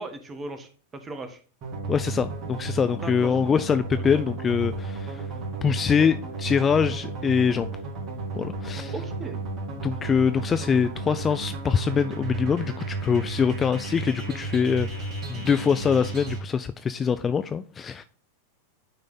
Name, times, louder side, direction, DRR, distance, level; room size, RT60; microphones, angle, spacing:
voice 1, 0.0-1.4 3.0-3.4 8.9-9.5, right 2 dB, 20° right, 1.1 m, -37 dB
sound 1, 1.6-16.4, right 3 dB, 35° right, 2.6 m, -33 dB
voice 2, 1.9-5.2 5.6-7.7 8.3-8.9 9.8-18.0, left 6 dB, 20° left, 0.3 m, -24 dB
9.5 x 3.3 x 3.9 m
figure-of-eight pair, 90°, 0 cm